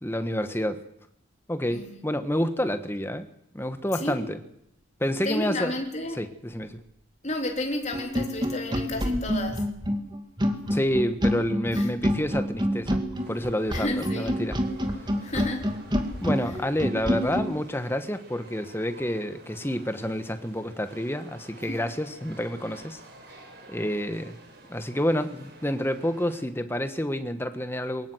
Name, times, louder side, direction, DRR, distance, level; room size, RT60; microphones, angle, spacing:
voice 1, 0.0-0.8 1.5-3.2 3.5-4.4 5.0-5.7 6.2-6.8 10.7-13.0 13.3-14.6 16.2-23.0 23.7-24.4 24.7-28.1, equal, 10° left, 1.3 m, -29 dB
voice 2, 1.7-2.0 3.9-4.2 5.2-6.2 7.2-9.7 11.7-11.9 13.7-14.3 15.2-15.7 21.7-21.8, left 1 dB, 35° left, 3.7 m, -32 dB
sound 1, 7.9-17.5, equal, 20° right, 2.3 m, -27 dB
sound 2, 13.1-26.4, right 2 dB, 50° right, 6.5 m, -50 dB
23.0 x 19.5 x 7.9 m
head